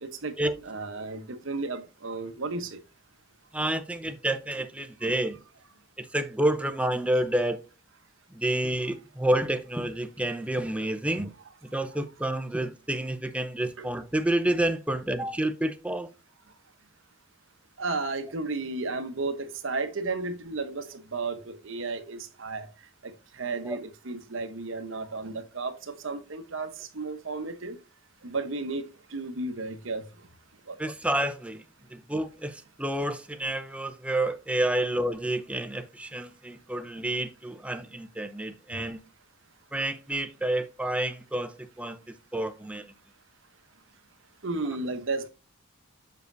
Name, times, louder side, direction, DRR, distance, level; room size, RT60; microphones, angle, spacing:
voice 1, 0.0-0.3 0.6-2.8 17.8-22.7 23.0-27.8 28.2-30.1 30.7-30.8 38.7-38.8 44.4-45.3, right 3 dB, 60° right, 0.9 m, -33 dB
voice 2, 3.5-5.4 6.0-7.6 8.3-11.3 11.7-16.1 23.6-23.8 30.8-31.6 31.9-39.0 39.7-42.9, right 1 dB, 5° right, 0.5 m, -29 dB
7.2 x 6.5 x 2.6 m
head